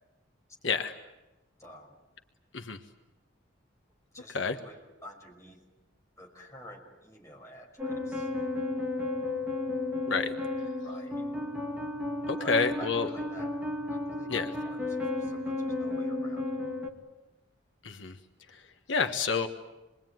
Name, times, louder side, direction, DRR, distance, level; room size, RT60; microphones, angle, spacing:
voice 1, 0.6-1.0 2.5-2.8 4.3-4.6 10.1-10.3 12.3-13.1 14.3-14.5 17.8-18.2 18.5-19.5, left 4 dB, 70° left, 5 dB, 1.3 m, -29 dB
voice 2, 1.6-2.0 4.1-5.6 6.2-8.3 10.8-11.2 12.4-13.5 13.9-16.5, equal, 15° left, 0 dB, 5.7 m, -49 dB
sound 1, 7.8-16.9, left 2 dB, 5° right, 2.4 m, -33 dB
27.0 x 22.0 x 9.4 m, 1.1 s
head